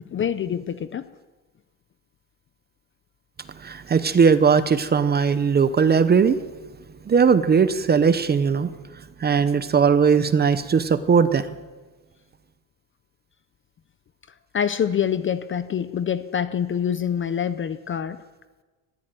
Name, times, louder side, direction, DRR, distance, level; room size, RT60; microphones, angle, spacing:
voice 1, 0.1-1.1 14.5-18.2, left 8 dB, 25° left, 13 dB, 0.6 m, -25 dB
voice 2, 3.6-6.4 7.1-8.7 9.2-11.5, right 6 dB, 20° right, 13 dB, 0.7 m, -19 dB
19.5 x 14.5 x 9.1 m, 1.3 s
cardioid pair, 165°, 50 cm